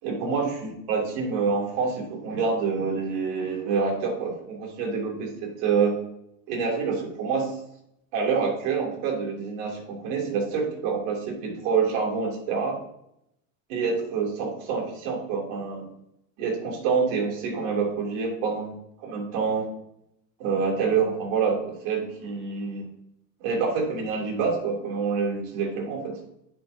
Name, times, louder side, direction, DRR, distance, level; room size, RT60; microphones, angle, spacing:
voice 1, 0.0-6.0 6.5-7.6 8.1-12.8 13.7-15.9 16.4-19.7 20.4-22.9 23.4-26.1, right 5 dB, 70° right, -1 dB, 3.2 m, -27 dB
10.5 x 6.2 x 2.8 m, 0.78 s
supercardioid pair, 125°, 41 cm